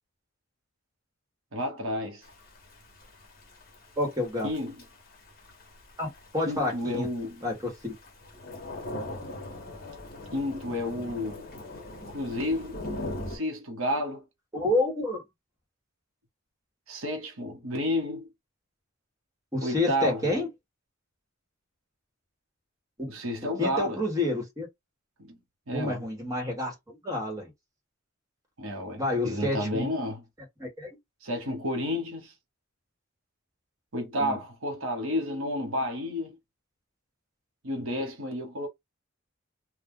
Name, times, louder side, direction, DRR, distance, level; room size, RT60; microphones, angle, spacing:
voice 1, 1.5-2.2 4.4-4.8 6.4-7.4 10.3-11.5 12.1-12.8 13.3-14.2 16.9-18.3 19.6-20.3 23.1-24.0 25.2-25.4 25.7-26.0 28.6-30.2 31.2-32.3 33.9-36.3 37.6-38.7, left 1 dB, 85° right, 1.0 m, -31 dB
Thunder / Rain, 2.2-13.4, left 1 dB, 45° left, 1.0 m, -41 dB
voice 2, 4.0-4.5 6.0-7.1 7.4-7.9 14.5-15.2 19.5-20.5 23.0-23.1 23.6-24.7 25.7-27.5 29.0-29.9 30.6-30.9 34.2-34.4, left 2 dB, 15° right, 1.2 m, -29 dB
2.4 x 2.2 x 3.6 m
head